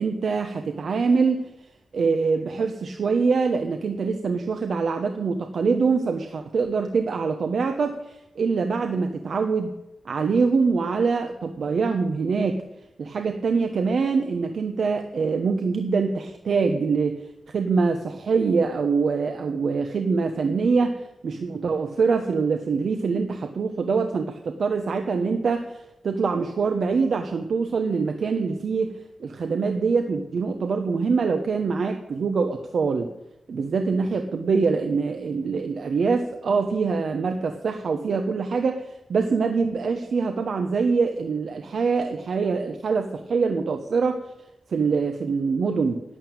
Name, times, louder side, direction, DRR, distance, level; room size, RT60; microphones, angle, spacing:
voice 1, 0.0-1.5 1.9-9.7 10.0-12.6 13.0-17.3 17.5-33.1 33.5-44.2 44.7-46.0, right 4 dB, 75° right, 6 dB, 1.1 m, -24 dB
12.0 x 9.0 x 8.9 m, 0.90 s
wide cardioid pair, 85°, 0 cm